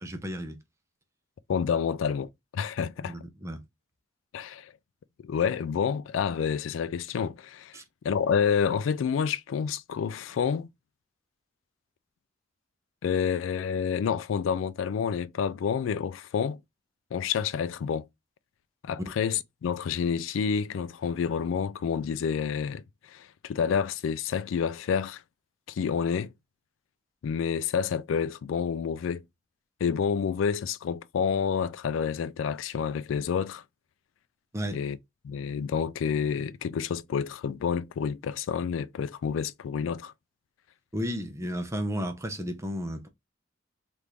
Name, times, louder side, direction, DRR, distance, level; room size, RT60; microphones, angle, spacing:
voice 1, 0.0-0.6 3.0-3.6 7.7-7.8 34.5-34.8 40.9-43.1, equal, 15° right, 0.6 m, -33 dB
voice 2, 1.5-3.2 4.3-4.7 5.2-7.8 8.0-10.7 13.0-16.6 17.1-18.1 18.8-25.2 25.7-26.3 27.2-29.2 29.8-33.6 34.7-35.0 35.2-40.1, left 7 dB, 90° left, 0.3 m, -29 dB
3.4 x 2.5 x 2.9 m
head